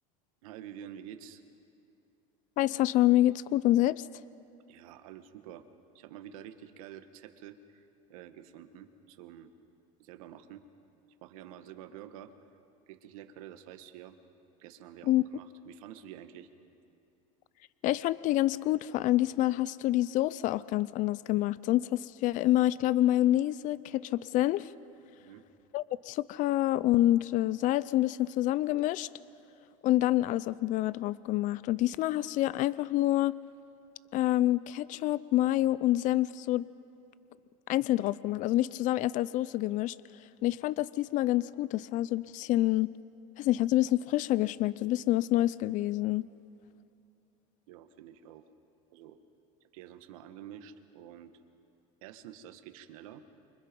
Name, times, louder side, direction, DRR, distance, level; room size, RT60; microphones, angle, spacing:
voice 1, 0.4-1.4 4.7-5.7 5.9-9.5 10.0-10.6 11.2-12.3 12.9-14.2 14.6-16.5 25.1-25.4 47.7-48.5 48.9-49.2 49.7-51.3 52.0-53.2, right 10 dB, 80° right, 8 dB, 1.7 m, -48 dB
voice 2, 2.6-4.0 15.1-15.2 17.8-24.7 25.7-29.1 29.8-33.4 34.1-36.7 37.7-40.0 40.4-42.9 43.4-46.2, left 15 dB, 45° left, 19 dB, 0.5 m, -27 dB
28.5 x 25.5 x 5.3 m, 2.8 s
supercardioid pair, 115°, 18 cm